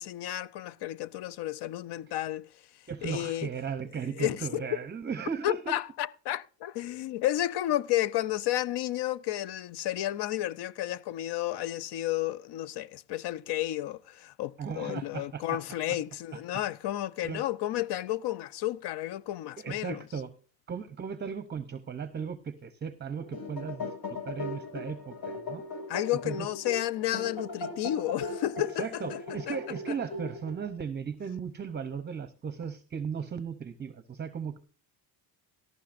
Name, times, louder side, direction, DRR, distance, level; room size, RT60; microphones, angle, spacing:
voice 1, 0.0-2.5 3.0-3.5 4.2-4.7 5.4-20.0 25.9-29.2 29.5-29.6 29.9-30.0, left 14 dB, 60° left, 0.6 m, -32 dB
voice 2, 2.9-5.7 14.6-15.6 15.9-16.0 16.3-16.4 17.2-17.4 19.6-20.3 20.7-23.9 24.2-25.6 26.2-26.5 28.8-34.6, right 6 dB, 25° right, 0.7 m, -36 dB
sound 1, 23.1-30.7, left 3 dB, 75° left, 6.3 m, -39 dB
17.5 x 13.5 x 2.5 m
cardioid pair, 135°, 46 cm